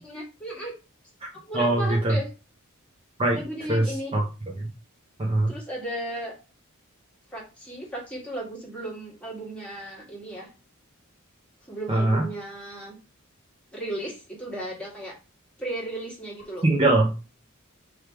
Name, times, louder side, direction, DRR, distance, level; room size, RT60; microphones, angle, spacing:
voice 1, 0.0-0.7 1.4-2.3 3.3-4.1 5.5-6.3 7.3-10.5 11.6-12.9 13.7-15.2 15.6-16.7, right 1 dB, 5° left, -4 dB, 1.7 m, -35 dB
voice 2, 1.5-2.2 3.2-3.4 3.7-4.2 4.6-4.7 5.2-5.5 11.9-12.3 16.6-17.2, right 2 dB, 25° right, -2 dB, 0.7 m, -22 dB
3.3 x 3.2 x 4.6 m, 0.32 s
head